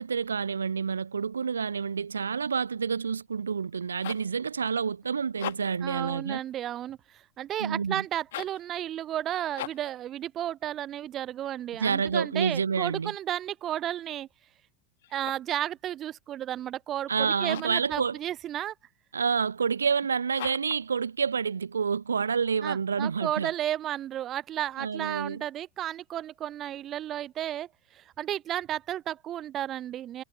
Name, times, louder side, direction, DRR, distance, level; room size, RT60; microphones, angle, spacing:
voice 1, 0.0-6.4 7.6-8.0 11.8-13.1 17.1-18.2 19.1-23.5 24.8-25.4, right 6 dB, 70° right, 0.6 m, -28 dB
sound 1, 3.7-4.4 5.3-5.9 8.2-8.7 9.5-10.0 15.0-15.6 17.4-17.8 20.3-20.9, left 14 dB, 55° left, 2.3 m, -40 dB
voice 2, 5.8-14.3 15.1-18.7 22.6-30.2, right 11 dB, 30° right, 0.3 m, -33 dB
figure-of-eight pair, 90°, 0 cm